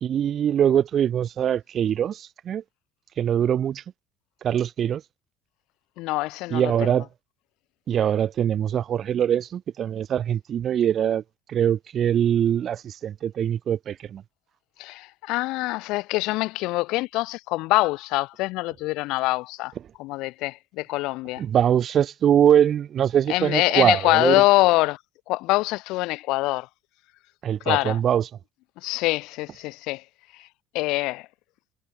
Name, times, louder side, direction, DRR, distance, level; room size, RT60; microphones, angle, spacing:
voice 1, 0.0-2.6 3.2-3.8 4.4-5.0 6.5-7.0 7.9-11.2 11.5-14.2 21.4-24.3 27.4-28.2, right 9 dB, 35° right, 0.6 m, -22 dB
voice 2, 6.0-6.9 14.8-19.7 20.0-21.4 23.3-25.0 25.3-26.7 27.6-28.0 28.8-30.0 30.3-30.5 30.7-31.3, left 21 dB, 65° left, 1.5 m, -24 dB
cardioid pair, 140°, 0 cm